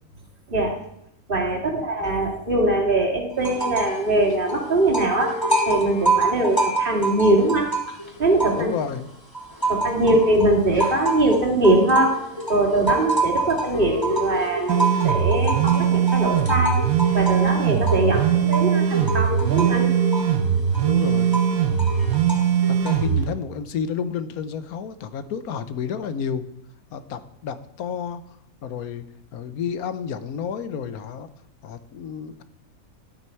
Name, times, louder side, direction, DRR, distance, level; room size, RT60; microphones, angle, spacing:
voice 1, 1.3-5.4 5.7-7.7 8.2-8.7 9.7-16.8 17.1-19.9, right 2 dB, 35° right, -1 dB, 2.5 m, -22 dB
sound 1, 3.4-4.0 4.3-9.0 9.3-23.2, right 2 dB, 15° left, 3.0 m, -27 dB
voice 2, 8.6-9.1 10.0-10.1 20.8-21.4 22.7-26.4 26.9-28.2 28.6-29.1 29.3-31.3 31.6-32.4, left 7 dB, 90° left, 11 dB, 1.3 m, -31 dB
sound 2, 14.7-23.2, right 8 dB, 75° right, 1.2 m, -21 dB
13.0 x 8.9 x 4.5 m, 0.76 s
omnidirectional pair, 1.5 m